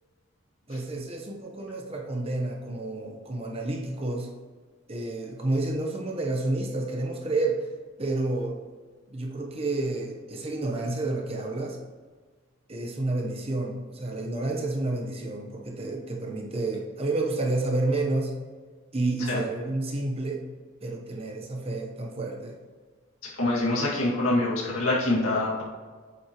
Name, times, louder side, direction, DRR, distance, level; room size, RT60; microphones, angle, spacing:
voice 1, 0.7-4.3 4.9-7.7 8.0-8.6 9.1-11.8 12.7-18.3 18.9-20.4 20.8-22.6, right 2 dB, 30° right, 1 dB, 0.9 m, -30 dB
voice 2, 23.4-25.6, left 2 dB, 85° left, -3 dB, 2.0 m, -25 dB
8.1 x 7.8 x 3.0 m, 1.5 s
head